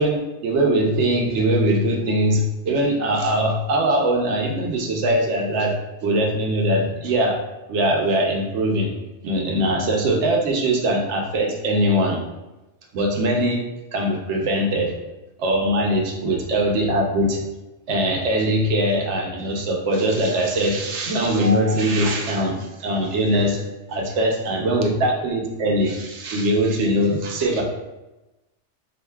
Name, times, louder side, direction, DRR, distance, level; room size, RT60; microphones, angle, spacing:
voice 1, 0.0-5.7 6.0-7.4 7.7-8.9 9.2-12.2 12.9-13.6 13.9-14.9 15.4-17.4 17.9-23.6 23.9-27.6, right 1 dB, 75° right, 0 dB, 1.0 m, -21 dB
4.7 x 2.5 x 2.2 m, 1.0 s
omnidirectional pair, 1.2 m